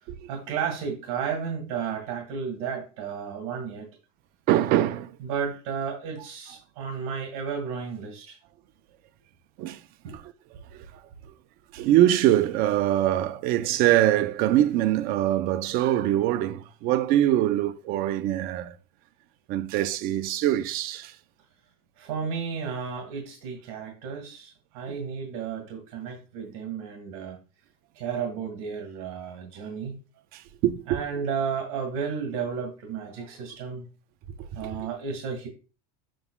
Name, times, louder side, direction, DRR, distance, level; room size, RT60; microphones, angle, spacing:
voice 1, 0.3-3.9 5.2-8.4 10.0-10.2 22.0-27.4 28.0-29.9 30.9-33.8 34.5-35.5, right 6 dB, 70° right, 2.0 m, -33 dB
voice 2, 4.5-5.1 9.6-9.8 10.1-10.3 10.7-10.9 11.7-18.7 19.5-21.2 24.9-25.0 30.3-31.0 34.6-34.9, right 13 dB, 55° right, 0.7 m, -23 dB
7.7 x 6.7 x 2.3 m
supercardioid pair, 120°, 18 cm